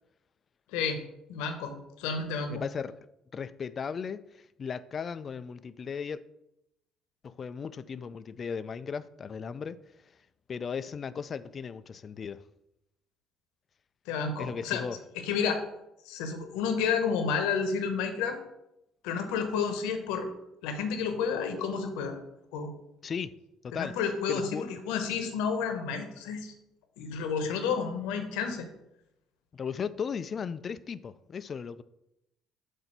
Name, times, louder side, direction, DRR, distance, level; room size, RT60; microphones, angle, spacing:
voice 1, 0.7-1.0 1.3-2.6 14.1-14.8 15.2-15.6 16.0-18.4 19.0-20.3 20.6-22.2 22.5-22.7 23.7-26.5 27.0-28.7, left 6 dB, 80° left, 1.0 m, -30 dB
voice 2, 2.5-3.0 3.3-6.2 7.2-9.8 10.5-12.4 14.4-15.0 23.0-23.4 23.6-23.9 24.3-24.6 29.5-31.8, left 6 dB, 45° left, 0.4 m, -36 dB
7.8 x 2.7 x 5.9 m
hypercardioid pair, 65°, 0 cm